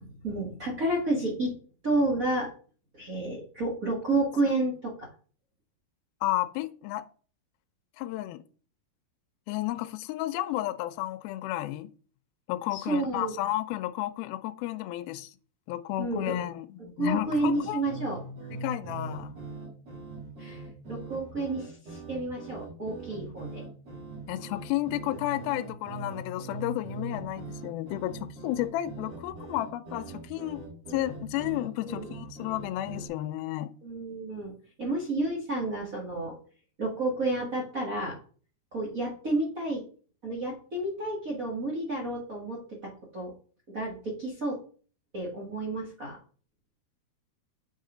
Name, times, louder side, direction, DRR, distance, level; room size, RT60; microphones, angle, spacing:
voice 1, 0.0-1.6 1.8-2.5 2.9-5.1 12.7-13.3 16.0-16.4 17.0-18.2 20.4-20.6 20.9-23.6 31.8-32.1 33.8-36.3 36.8-38.2 38.7-39.8 40.2-43.3 43.7-44.6 45.1-46.2, right 2 dB, 60° right, 0.8 m, -30 dB
voice 2, 6.2-7.1 8.0-8.4 9.5-11.9 12.5-15.3 15.7-17.8 18.6-19.4 24.3-30.6 30.9-33.7, left 15 dB, 80° left, 2.3 m, -32 dB
sound 1, 17.2-33.1, right 3 dB, 40° right, 4.2 m, -42 dB
7.4 x 5.6 x 3.8 m
omnidirectional pair, 4.6 m